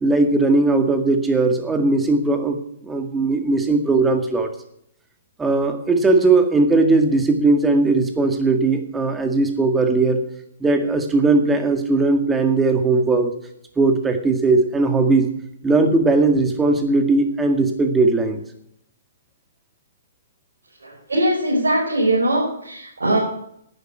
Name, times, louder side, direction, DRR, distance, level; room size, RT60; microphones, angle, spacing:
voice 1, 0.0-2.6 2.8-4.5 5.4-10.2 10.6-13.3 13.8-15.3 15.6-18.4, right 3 dB, 10° right, 6 dB, 1.9 m, -18 dB
voice 2, 20.8-23.2, right 1 dB, 85° right, -5 dB, 5.0 m, -21 dB
11.0 x 9.4 x 7.9 m, 0.72 s
hypercardioid pair, 135°, 0 cm